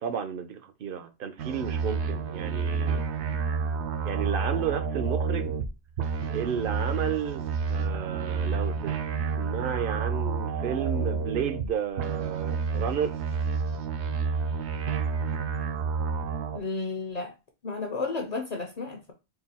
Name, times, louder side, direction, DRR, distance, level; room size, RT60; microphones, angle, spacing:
voice 1, 0.0-3.0 4.0-5.6 6.3-9.1 9.4-13.1, right 8 dB, 60° right, 0.7 m, -32 dB
sound 1, 1.4-5.7 6.0-11.7 12.0-16.6, right 5 dB, 80° right, 0.9 m, -29 dB
voice 2, 16.5-17.3 17.6-19.1, left 3 dB, 45° left, 0.7 m, -32 dB
3.9 x 2.3 x 4.2 m
omnidirectional pair, 1.1 m